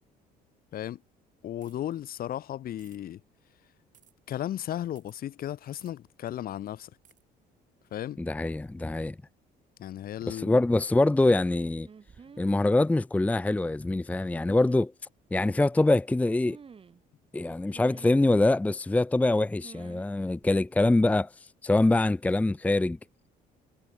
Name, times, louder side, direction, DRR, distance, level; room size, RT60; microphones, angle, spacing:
voice 1, 1.4-3.2 4.3-6.9 7.9-8.2 9.8-10.6, left 12 dB, 60° left, 2.5 m, -35 dB
sound 1, 1.6-1.9 2.8-3.0 3.9-4.1 4.9-5.2 5.7-5.9 7.0-7.2, right 9 dB, 50° right, 7.6 m, -60 dB
voice 2, 8.2-9.2 10.3-11.9 12.4-14.9 15.3-16.6 17.3-21.3 21.6-23.0, left 2 dB, 10° left, 0.6 m, -24 dB
sound 2, 11.9-12.6 14.3-14.8 16.4-17.0 17.7-18.2 19.6-20.1 20.4-20.6, right 6 dB, 35° right, 5.2 m, -50 dB
cardioid pair, 110°, 17 cm